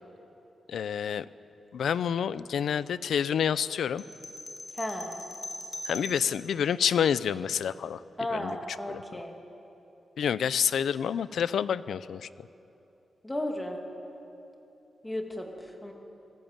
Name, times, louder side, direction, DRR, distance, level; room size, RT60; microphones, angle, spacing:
voice 1, 0.7-1.3 1.7-4.0 5.8-8.0 8.3-8.6 8.9-9.2 10.2-12.5, left 8 dB, 85° left, 16 dB, 0.6 m, -28 dB
sound 1, 4.0-6.5, left 1 dB, 25° left, 3.6 m, -41 dB
voice 2, 4.7-5.2 8.2-9.4 13.2-13.8 15.0-15.9, left 1 dB, 10° left, 2 dB, 2.3 m, -34 dB
25.5 x 18.0 x 9.0 m, 2.9 s
wide cardioid pair, 180°, 0 cm